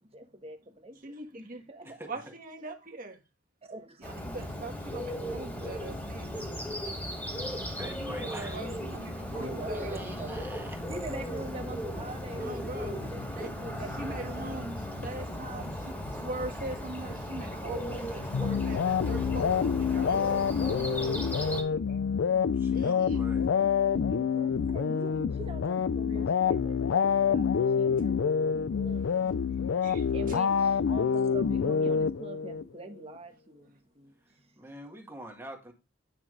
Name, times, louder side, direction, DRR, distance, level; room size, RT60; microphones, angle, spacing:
voice 1, 0.0-2.1 3.6-4.2 5.2-5.7 8.3-8.8 9.3-10.4 10.9-14.6 23.9-29.3 29.6-29.7 30.1-34.6, right 1 dB, 30° right, 1.3 m, -43 dB
voice 2, 1.0-1.7 2.1-3.2 4.0-6.3 8.2-10.0 12.4-13.0 13.4-13.6 14.0-20.4 20.7-21.1 22.7-23.5 23.8-24.0 29.8-30.4, right 2 dB, 45° right, 1.6 m, -42 dB
voice 3, 1.8-2.3 7.8-8.6 9.1-9.2 9.7-10.8 22.5-23.5 34.6-35.7, right 1 dB, 15° right, 1.8 m, -45 dB
Bird, 4.0-21.6, equal, 10° left, 2.4 m, -36 dB
sound 1, 18.3-32.6, left 6 dB, 80° left, 0.4 m, -27 dB
9.6 x 6.0 x 3.2 m
head